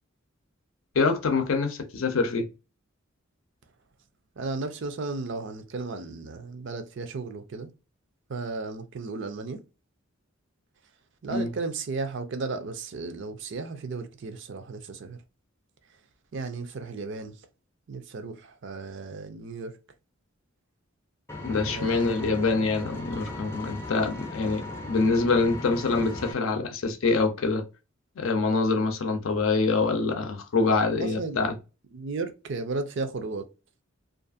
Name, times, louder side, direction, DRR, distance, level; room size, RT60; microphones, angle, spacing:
voice 1, 0.9-2.5 11.3-11.5 21.4-27.6 28.2-31.5, left 3 dB, 75° left, 0.5 m, -25 dB
voice 2, 4.4-7.7 8.3-9.6 11.2-15.2 16.3-17.4 17.9-19.8 21.5-22.1 31.0-31.4 31.9-33.5, right 3 dB, 60° right, 0.5 m, -34 dB
Engine, 21.3-26.3, left 2 dB, 10° left, 0.5 m, -37 dB
2.5 x 2.4 x 2.5 m
head